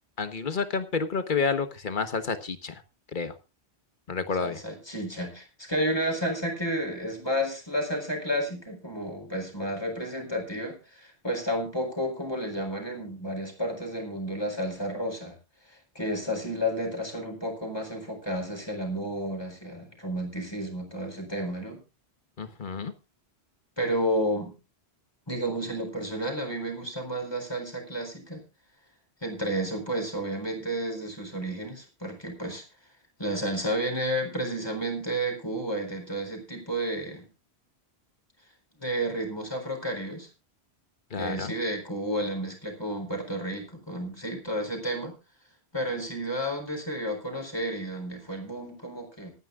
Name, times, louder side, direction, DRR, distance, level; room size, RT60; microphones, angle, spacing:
voice 1, 0.2-2.8 3.1-3.4 4.1-4.6 22.4-22.9 41.1-41.5, left 5 dB, 50° left, 9 dB, 1.4 m, -29 dB
voice 2, 4.4-15.4 15.9-21.8 23.8-24.6 25.3-28.4 29.2-32.6 33.2-37.3 38.8-40.3 41.1-45.1 45.7-49.3, equal, 25° left, 2 dB, 4.2 m, -31 dB
26.0 x 9.7 x 2.5 m, 0.28 s
omnidirectional pair, 1.1 m